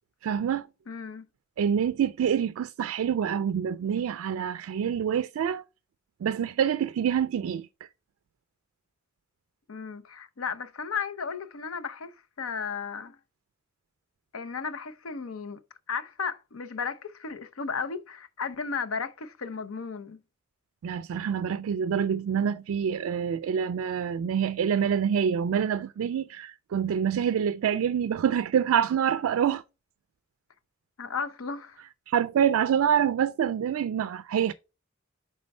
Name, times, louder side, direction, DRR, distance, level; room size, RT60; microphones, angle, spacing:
voice 1, 0.2-0.7 1.6-5.6 6.2-7.9 20.8-29.6 32.1-34.5, right 8 dB, 80° right, 0.3 m, -26 dB
voice 2, 0.9-1.3 9.7-13.2 14.3-15.6 15.9-20.2 31.0-31.8, left 5 dB, 80° left, 0.6 m, -34 dB
5.3 x 3.7 x 5.3 m
head